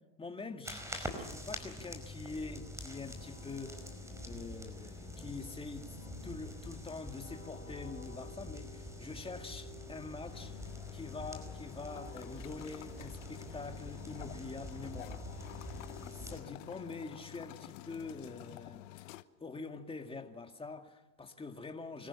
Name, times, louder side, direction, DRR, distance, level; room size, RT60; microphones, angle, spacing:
voice 1, 0.2-3.8 4.2-6.0 6.2-15.6 15.9-19.1 19.4-22.1, left 3 dB, 15° left, 2.3 m, -45 dB
sound 1, 0.6-16.4, left 1 dB, 10° right, 5.0 m, -46 dB
sound 2, 2.1-16.8, left 4 dB, 30° left, 6.0 m, -54 dB
sound 3, 10.3-19.2, left 16 dB, 80° left, 1.0 m, -50 dB
25.0 x 15.0 x 9.9 m
supercardioid pair, 105°, 37 cm